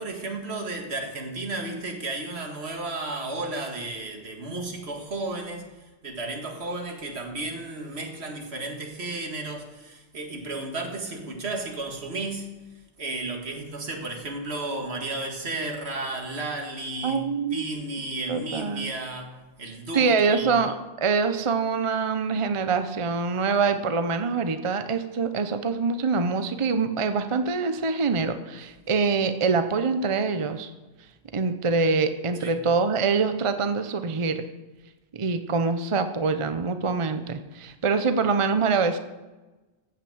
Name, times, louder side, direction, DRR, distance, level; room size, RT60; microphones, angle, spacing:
voice 1, 0.0-12.6 13.0-17.2 17.5-20.6 32.4-32.6, right 2 dB, 70° right, 3 dB, 2.0 m, -33 dB
voice 2, 17.0-17.7 18.3-18.9 19.9-30.7 31.3-34.5 35.1-39.0, right 4 dB, 35° right, 9 dB, 0.7 m, -25 dB
14.5 x 5.9 x 7.8 m, 1.2 s
omnidirectional pair, 1.1 m